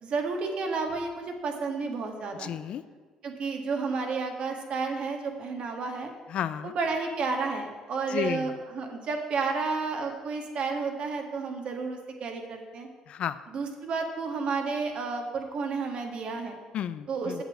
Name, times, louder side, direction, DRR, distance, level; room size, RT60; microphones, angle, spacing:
voice 1, 0.0-2.5 3.2-6.1 6.6-12.9 13.5-16.6 17.1-17.4, right 4 dB, 55° right, 3 dB, 1.6 m, -31 dB
voice 2, 2.4-2.8 6.3-6.7 8.1-8.5 13.1-13.4 16.7-17.4, left 9 dB, 65° left, 14 dB, 0.4 m, -32 dB
8.0 x 6.9 x 7.2 m, 1.4 s
cardioid pair, 85°, 2 cm